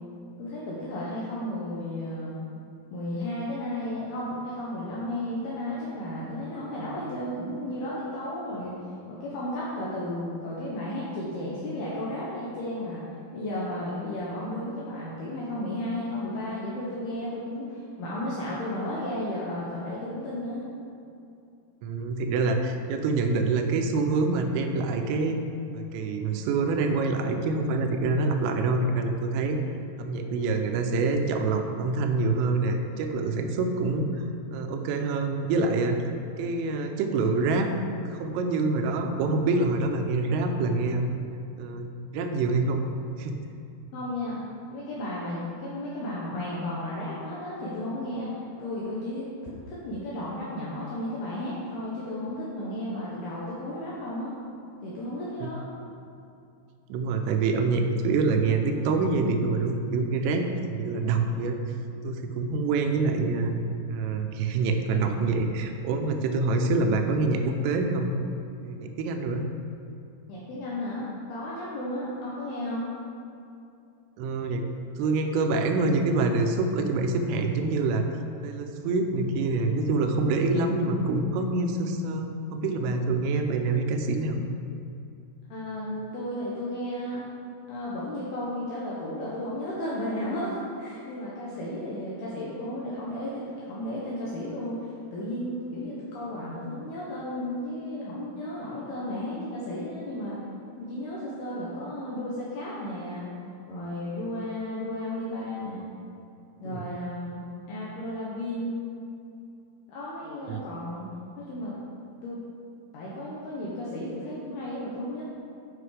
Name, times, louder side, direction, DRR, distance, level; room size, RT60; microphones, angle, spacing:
voice 1, 0.4-2.3 2.9-8.8 9.1-13.0 13.3-20.7 43.9-44.4 44.7-49.3 49.7-54.3 54.8-55.6 70.3-72.9 85.5-87.2 87.7-100.4 100.8-103.3 103.7-105.9 106.6-107.4 107.7-108.8 109.9-111.1 111.4-111.8 112.2-112.4 112.9-115.2, left 1 dB, 75° left, -6 dB, 2.4 m, -33 dB
voice 2, 21.8-25.4 25.7-29.6 30.0-34.2 34.5-36.0 36.4-37.7 38.1-41.1 41.6-42.8 43.2-43.4 55.4-55.5 56.9-61.6 62.0-63.5 63.9-68.1 68.6-69.4 74.2-74.7 75.0-78.0 78.4-84.4 106.7-106.9 110.5-110.6, right 3 dB, 85° right, 5 dB, 3.2 m, -26 dB
9.6 x 5.8 x 4.9 m, 2.7 s
omnidirectional pair, 5.9 m